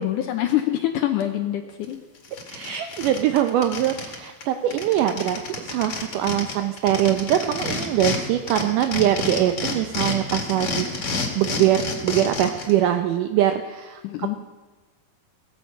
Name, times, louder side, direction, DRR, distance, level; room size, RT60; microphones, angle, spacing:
voice 1, 0.0-2.0 2.7-3.0 14.0-14.4, left 13 dB, 75° left, 6 dB, 1.9 m, -25 dB
sound 1, 1.8-1.9 2.2-4.2 4.4-4.5 4.7-8.2 8.5-12.7, left 4 dB, 45° left, 2.5 m, -29 dB
voice 2, 2.5-14.0, right 11 dB, 80° right, 7 dB, 1.9 m, -23 dB
17.0 x 15.0 x 5.5 m, 1.3 s
omnidirectional pair, 4.4 m